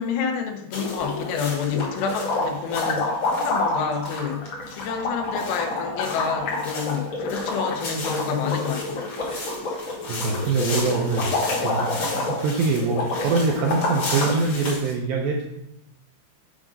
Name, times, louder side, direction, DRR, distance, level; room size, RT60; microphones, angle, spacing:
voice 1, 0.0-9.0, left 6 dB, 85° left, 3 dB, 3.1 m, -29 dB
sound 1, 0.7-1.4 1.7-14.4, left 2 dB, 60° left, 2.0 m, -28 dB
sound 2, 0.7-14.9, left 2 dB, 40° left, 2.6 m, -36 dB
voice 2, 9.8-11.3 11.6-15.5, right 4 dB, 75° right, 0 dB, 2.2 m, -24 dB
7.9 x 3.7 x 5.2 m, 0.85 s
omnidirectional pair, 4.9 m